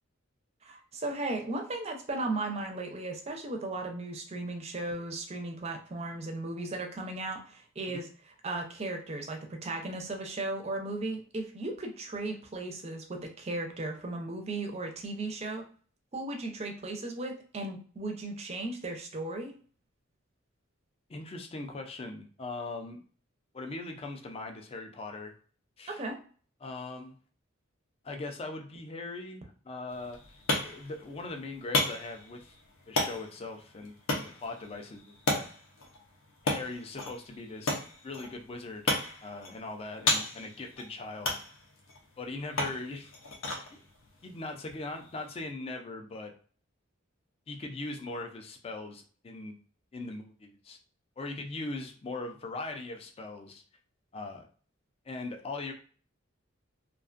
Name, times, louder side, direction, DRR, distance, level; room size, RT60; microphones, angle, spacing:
voice 1, 0.6-8.1 8.4-15.6 16.1-19.5 25.9-26.2, right 2 dB, 30° right, 3 dB, 0.5 m, -36 dB
voice 2, 21.1-23.0 23.5-25.3 25.8-26.0 26.6-27.2 28.0-30.2 30.6-32.5 32.9-35.5 36.4-38.9 39.2-41.3 42.2-43.1 43.7-43.8 44.2-46.3 47.5-49.6 49.9-50.8 51.2-53.6 54.1-54.4 55.1-55.7, left 2 dB, 30° left, 4 dB, 0.4 m, -40 dB
sound 1, 29.9-45.5, left 2 dB, 75° left, 0.6 m, -35 dB
2.4 x 2.2 x 2.4 m, 0.43 s
head